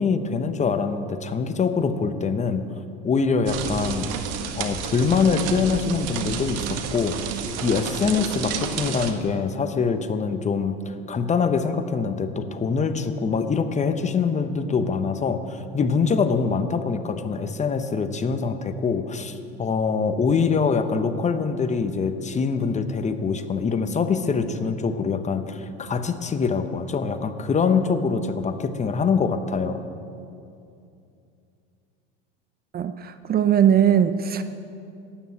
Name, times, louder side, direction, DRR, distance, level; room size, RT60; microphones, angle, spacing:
voice 1, 0.0-2.6 3.0-4.2 4.5-7.2 7.6-29.8, left 5 dB, 20° left, 9 dB, 0.9 m, -24 dB
sound 1, 3.5-9.1, right 7 dB, 55° right, 1.5 m, -30 dB
voice 2, 32.7-34.4, right 9 dB, 30° right, 10 dB, 0.6 m, -20 dB
12.5 x 9.5 x 8.6 m, 2.6 s
supercardioid pair, 105°, 31 cm